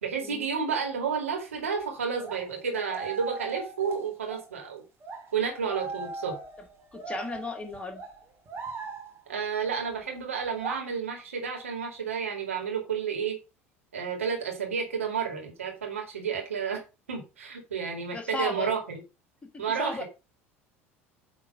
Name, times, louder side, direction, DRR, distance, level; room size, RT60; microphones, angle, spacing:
voice 1, 0.0-4.8 5.3-6.4 9.3-13.4 13.9-16.8 17.1-19.0 19.6-20.0, right 6 dB, 80° right, 2.3 m, -31 dB
sound 1, 1.6-1.7 2.2-4.5 5.0-9.3 10.4-10.8, right 4 dB, 35° right, 1.9 m, -39 dB
voice 2, 6.9-8.0 18.1-18.7 19.8-20.0, left 3 dB, 15° left, 1.7 m, -34 dB
8.7 x 3.6 x 5.1 m
figure-of-eight pair, 70°, 7 cm